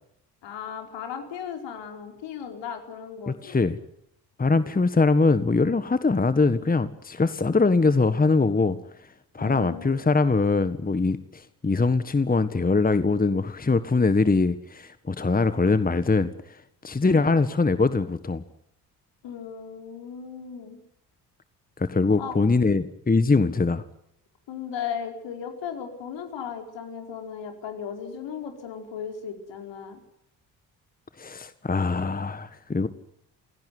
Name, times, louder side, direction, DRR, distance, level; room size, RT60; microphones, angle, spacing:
voice 1, 0.4-3.7 9.4-10.3 17.0-17.4 19.2-20.8 22.2-22.3 24.5-30.0, left 7 dB, 65° left, 5 dB, 5.1 m, -36 dB
voice 2, 3.3-3.8 4.4-8.8 9.3-16.6 16.8-18.4 21.8-23.8 31.2-32.9, left 3 dB, 20° left, 13 dB, 1.6 m, -22 dB
29.0 x 17.5 x 9.5 m, 0.77 s
hypercardioid pair, 45°, 47 cm